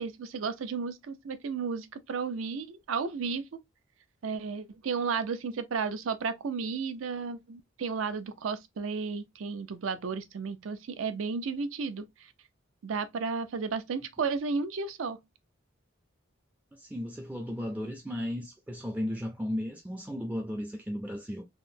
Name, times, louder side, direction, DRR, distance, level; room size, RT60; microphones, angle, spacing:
voice 1, 0.0-3.4 4.2-12.1 12.8-15.2, right 5 dB, 80° right, 0.5 m, -33 dB
voice 2, 16.7-21.4, equal, 10° right, 0.3 m, -35 dB
3.5 x 2.0 x 2.6 m
head